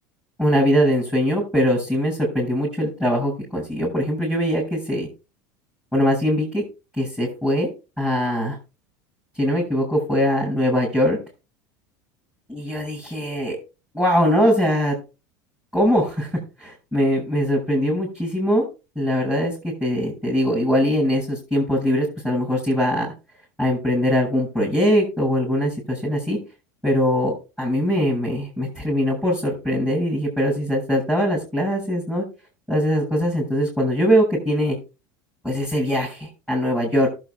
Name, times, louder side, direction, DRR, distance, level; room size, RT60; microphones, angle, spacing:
voice 1, 0.4-5.1 5.9-6.6 7.0-7.7 8.0-8.6 9.4-11.2 12.5-13.6 13.9-15.0 15.7-18.6 19.0-19.5 19.8-23.1 23.6-26.4 26.8-32.2 32.7-34.8 35.4-37.1, equal, 5° right, -5 dB, 7.3 m, -21 dB
19.5 x 8.2 x 2.3 m, 0.29 s
hypercardioid pair, 95°, 10 cm